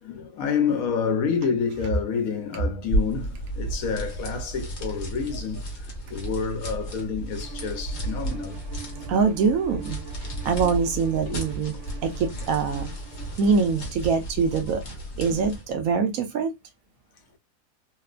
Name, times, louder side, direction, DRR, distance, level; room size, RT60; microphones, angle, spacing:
voice 1, 0.0-8.6 11.2-11.4 15.3-15.4, left 6 dB, 70° left, 1.1 m, -28 dB
sound 1, 2.8-15.7, right 1 dB, 50° left, 1.1 m, -33 dB
Bowed string instrument, 7.4-13.9, right 8 dB, 55° right, 1.2 m, -44 dB
voice 2, 9.1-10.0 10.4-11.8 12.0-12.9 13.4-14.8 15.2-16.5, right 5 dB, 75° right, 1.0 m, -24 dB
2.9 x 2.1 x 2.3 m
omnidirectional pair, 1.6 m